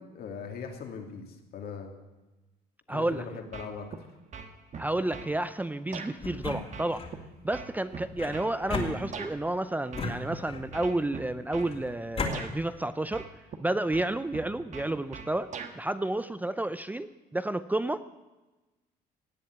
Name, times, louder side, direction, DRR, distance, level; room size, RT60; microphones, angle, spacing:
voice 1, 0.0-1.9 2.9-4.1, left 5 dB, 65° left, 3 dB, 2.9 m, -40 dB
voice 2, 2.9-3.2 4.8-7.1 7.4-13.3 13.6-18.1, right 1 dB, 10° right, 13 dB, 0.5 m, -31 dB
sound 1, 3.5-4.0 4.3-5.3 5.9-6.1 6.7-9.4 9.9-10.4 10.7-11.7 12.3-12.5 13.1-13.6 13.9-15.8, right 6 dB, 45° right, 1.5 m, -41 dB
sound 2, 6.2-7.2 8.2-9.4 9.9-10.8 11.6-12.4, left 3 dB, 35° left, 2.8 m, -35 dB
18.0 x 7.5 x 9.4 m, 1.1 s
cardioid pair, 110°, 17 cm